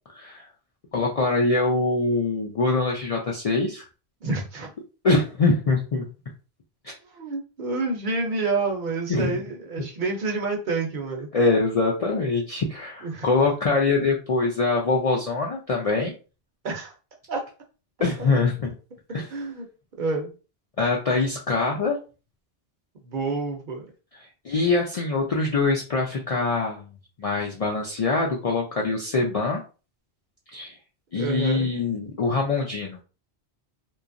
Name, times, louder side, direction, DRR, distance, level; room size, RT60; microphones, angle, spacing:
voice 1, 0.2-0.5 0.9-3.9 5.0-6.1 6.8-6.9 9.1-9.4 11.3-16.1 18.0-18.7 19.1-19.3 20.8-22.0 24.2-26.9 27.2-29.6 30.5-30.8 31.1-33.0, left 3 dB, 55° left, -1 dB, 0.4 m, -24 dB
voice 2, 4.2-4.7 7.1-11.3 13.0-13.3 16.6-16.9 17.3-17.4 18.2-18.3 19.3-19.7 20.0-20.3 23.0-23.9 31.2-31.7, right 3 dB, 55° right, 2 dB, 0.7 m, -28 dB
2.8 x 2.3 x 2.5 m, 0.34 s
omnidirectional pair, 1.1 m